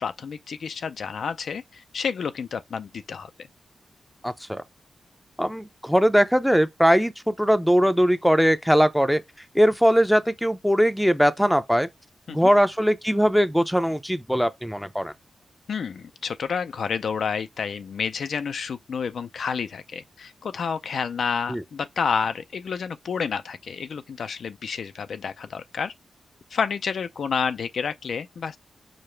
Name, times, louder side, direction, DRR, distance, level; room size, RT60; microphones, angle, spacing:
voice 1, 0.0-3.3 12.3-12.5 15.7-25.9 26.5-28.6, left 6 dB, 75° left, 0.3 m, -29 dB
voice 2, 4.2-4.6 5.4-9.2 9.5-11.9 12.3-15.1 21.5-21.6, equal, ahead, 0.5 m, -20 dB
5.0 x 2.0 x 4.3 m
cardioid pair, 85°, 0 cm